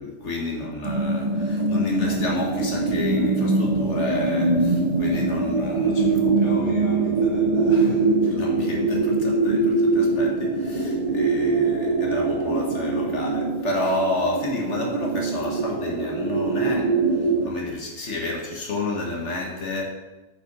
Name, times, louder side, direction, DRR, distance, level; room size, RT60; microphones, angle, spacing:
voice 1, 0.0-19.8, left 2 dB, 65° left, 0 dB, 1.7 m, -30 dB
sound 1, 0.8-17.5, right 3 dB, 35° right, 0.9 m, -23 dB
8.7 x 5.8 x 6.0 m, 1.1 s
omnidirectional pair, 1.3 m